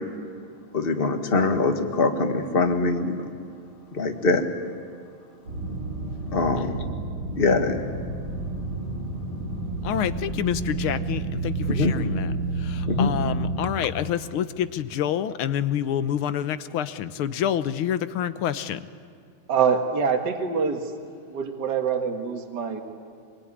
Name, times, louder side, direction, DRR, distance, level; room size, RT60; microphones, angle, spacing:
voice 1, 0.7-3.2 3.9-4.5 6.3-6.8 7.3-7.8 11.7-11.9 12.9-13.1, left 3 dB, 30° left, 6 dB, 1.7 m, -23 dB
sound 1, 5.5-13.5, right 3 dB, 85° right, 4.7 m, -30 dB
voice 2, 9.8-12.3 12.6-18.8, left 10 dB, 80° left, 13 dB, 1.8 m, -27 dB
voice 3, 19.5-20.9 21.3-22.8, right 6 dB, 55° right, 4 dB, 2.2 m, -25 dB
25.0 x 22.5 x 9.8 m, 2.3 s
omnidirectional pair, 2.3 m